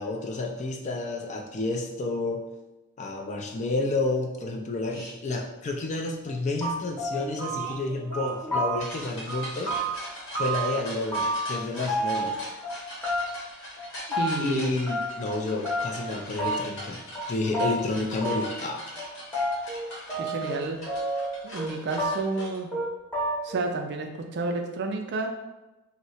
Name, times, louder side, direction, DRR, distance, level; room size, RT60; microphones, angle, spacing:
voice 1, 0.0-2.4 3.0-9.7 10.4-12.4 14.4-17.0 17.3-18.8, left 2 dB, 30° left, 2 dB, 0.3 m, -30 dB
sound 1, 4.9-5.1 7.1-22.6, equal, 55° left, 0.9 m, -41 dB
sound 2, 6.3-6.4 6.6-7.8 8.1-9.0 9.3-10.8 11.1-11.6 11.9-12.7 13.0-13.5 13.8-14.5 14.9-15.4 15.6-16.1 16.4-16.8 17.2-17.3 17.5-17.7 18.2-18.7 19.0-20.6 20.9-21.7 22.0-22.4 22.7-22.9 23.1-23.6, right 1 dB, 10° left, 0.8 m, -29 dB
voice 2, 14.1-14.7 19.9-20.8 21.4-22.7 23.4-25.3, right 3 dB, 50° right, 4 dB, 0.4 m, -31 dB
2.7 x 2.1 x 4.1 m, 1.0 s
head